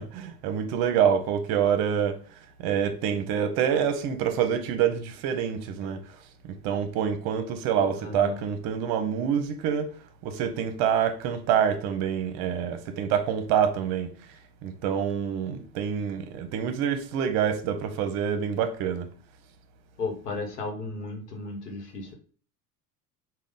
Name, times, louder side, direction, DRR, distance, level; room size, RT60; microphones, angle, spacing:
voice 1, 0.0-2.2 2.6-6.0 6.4-9.9 10.2-14.1 14.6-19.1, right 8 dB, 50° right, 0.7 m, -26 dB
voice 2, 8.0-8.3 20.0-22.1, left 3 dB, 85° left, 1.1 m, -34 dB
3.7 x 2.3 x 3.6 m
hypercardioid pair, 80°, 46 cm